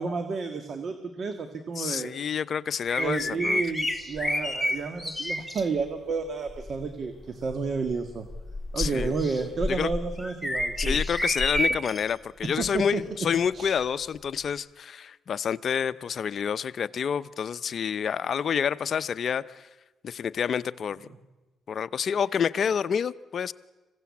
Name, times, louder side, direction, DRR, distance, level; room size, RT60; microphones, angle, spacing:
voice 1, 0.0-2.1 3.0-8.3 8.7-11.0 12.4-13.0 13.5-13.8, right 4 dB, 50° right, 8 dB, 1.8 m, -31 dB
voice 2, 1.8-3.6 8.8-9.1 9.7-9.9 10.8-19.7 20.0-21.1 21.7-23.5, left 7 dB, 55° left, 14 dB, 0.7 m, -28 dB
sound 1, 2.9-5.6 6.5-6.8 7.4-12.1 12.6-12.8 14.6-14.7, left 1 dB, ahead, 2.1 m, -30 dB
26.0 x 16.5 x 8.5 m, 1.2 s
cardioid pair, 90°, 0 cm